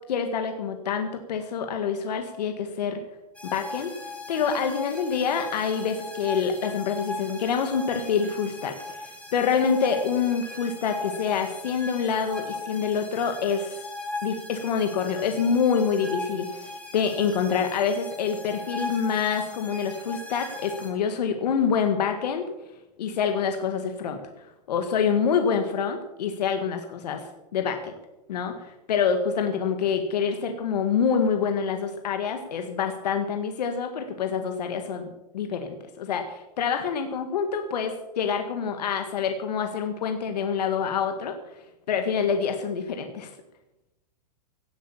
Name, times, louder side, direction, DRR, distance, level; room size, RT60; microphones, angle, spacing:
voice 1, 0.1-3.0 3.5-3.9 4.3-13.8 14.2-22.4 23.0-27.9 28.3-35.1 35.3-41.4 41.9-43.3, left 6 dB, 75° left, 6 dB, 1.8 m, -26 dB
sound 1, 3.3-20.9, left 2 dB, 5° left, 2.8 m, -39 dB
17.0 x 8.5 x 7.2 m, 0.97 s
supercardioid pair, 160°, 21 cm